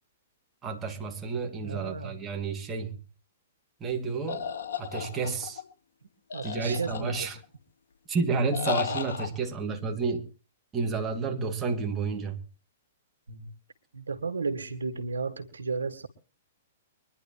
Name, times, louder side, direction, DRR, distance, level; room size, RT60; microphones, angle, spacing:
voice 1, 0.6-3.0 3.8-4.5 4.8-5.6 6.4-7.4 8.1-10.3 10.7-12.4, right 4 dB, 20° right, 2.5 m, -30 dB
voice 2, 1.6-2.2 6.3-7.3 13.3-13.5 13.9-16.1, right 4 dB, 90° right, 1.8 m, -33 dB
sound 1, 4.3-5.6 6.3-7.4 8.5-9.3, left 7 dB, 70° left, 2.7 m, -34 dB
24.5 x 11.0 x 3.1 m
hypercardioid pair, 125°, 0 cm